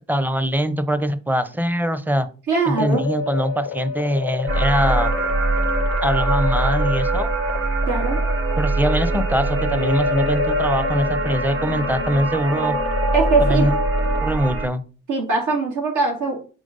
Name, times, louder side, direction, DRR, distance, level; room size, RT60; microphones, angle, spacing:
voice 1, 0.1-2.3 2.7-5.1 6.0-7.3 8.6-12.8 13.5-13.8 14.2-14.8, equal, 5° right, 12 dB, 0.7 m, -22 dB
voice 2, 2.5-3.0 7.9-8.2 13.1-13.7 15.1-16.5, right 4 dB, 75° right, 0 dB, 2.8 m, -21 dB
sound 1, 2.7-14.2, left 5 dB, 60° left, 0.5 m, -28 dB
sound 2, 4.5-14.7, right 3 dB, 50° right, 1.4 m, -23 dB
5.1 x 3.6 x 5.3 m, 0.36 s
cardioid pair, 90°, 30 cm